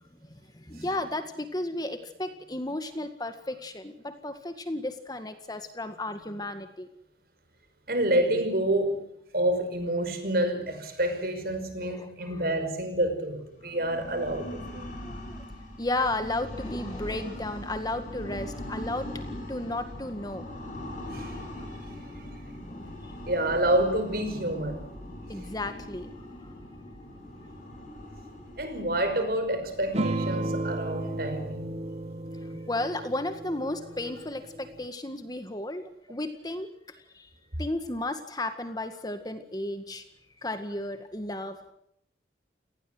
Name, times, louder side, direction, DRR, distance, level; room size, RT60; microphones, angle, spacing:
voice 1, 0.2-6.9 11.8-12.4 15.0-15.4 15.8-19.1 19.5-20.5 22.5-23.1 25.3-26.5 32.5-37.3 37.6-40.0 40.4-41.7, left 2 dB, 20° left, 8 dB, 1.9 m, -34 dB
voice 2, 7.9-14.9 21.1-21.4 21.9-22.3 23.3-24.9 28.6-31.8, right 1 dB, 55° right, 8 dB, 5.5 m, -28 dB
sound 1, 13.6-32.3, left 1 dB, 45° left, 7.9 m, -41 dB
sound 2, 29.9-34.8, right 2 dB, 35° right, 1.0 m, -34 dB
29.0 x 19.0 x 7.9 m, 0.72 s
head